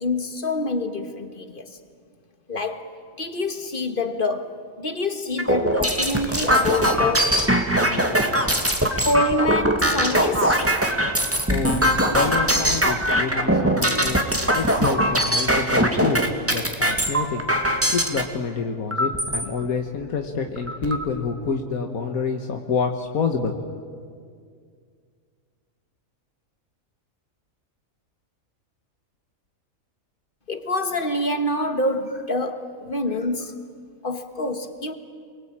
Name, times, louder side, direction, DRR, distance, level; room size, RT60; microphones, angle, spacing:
voice 1, 0.0-1.8 2.5-7.4 9.0-10.7 30.5-33.6 34.0-34.9, left 2 dB, 40° left, 1.8 m, -26 dB
sound 1, 5.4-18.2 18.9-19.4 20.0-20.1 20.4-21.0, equal, 10° right, 2.1 m, -21 dB
voice 2, 11.5-11.9 12.1-14.3 14.5-17.5 17.9-23.6, left 5 dB, 85° left, 1.8 m, -27 dB
28.5 x 22.0 x 8.9 m
omnidirectional pair, 1.5 m